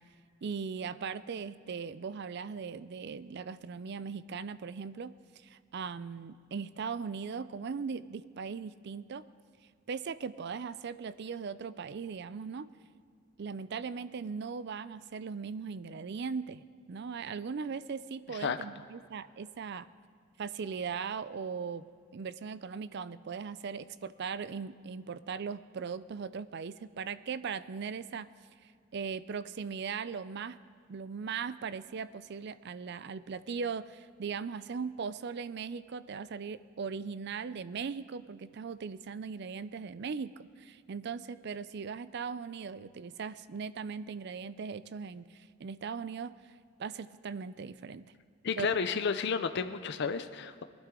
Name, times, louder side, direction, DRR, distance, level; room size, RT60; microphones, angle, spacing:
voice 1, 0.4-5.1 5.4-9.3 9.9-12.7 13.4-16.6 16.9-19.9 20.4-21.9 22.1-28.3 28.9-30.6 30.9-46.3 46.8-48.0 48.6-49.0, right 5 dB, 55° right, 16 dB, 0.4 m, -39 dB
voice 2, 48.4-50.6, left 5 dB, 55° left, 9 dB, 0.5 m, -31 dB
20.0 x 12.0 x 3.7 m, 2.2 s
head